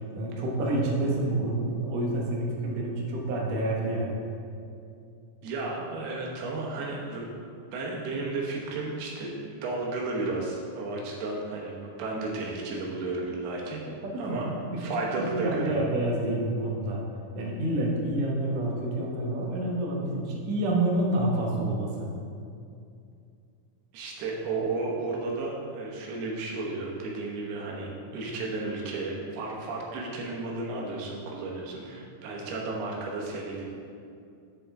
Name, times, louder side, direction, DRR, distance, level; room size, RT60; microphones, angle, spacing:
voice 1, 0.2-4.2 13.9-14.8 15.4-17.0 17.4-22.1, right 1 dB, 65° right, -2 dB, 1.8 m, -28 dB
voice 2, 5.4-7.3 7.7-13.8 14.2-14.5 14.8-15.8 23.9-33.6, right 3 dB, 80° right, -2 dB, 3.1 m, -33 dB
7.7 x 7.6 x 3.5 m, 2.5 s
omnidirectional pair, 4.4 m